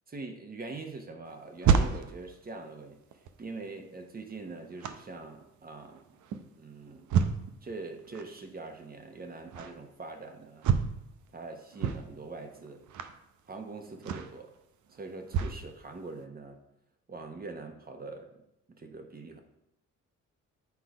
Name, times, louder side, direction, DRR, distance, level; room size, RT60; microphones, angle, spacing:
voice 1, 0.1-3.0 3.4-6.2 6.5-7.2 7.6-10.6 11.3-12.8 13.5-14.5 14.9-16.6 17.1-18.3 18.7-19.4, right 3 dB, 30° right, 5 dB, 1.2 m, -43 dB
sound 1, 1.3-15.6 16.2-16.3, right 7 dB, 75° right, 0.7 m, -32 dB
8.3 x 4.0 x 4.9 m, 0.83 s
cardioid pair, 90°, 30 cm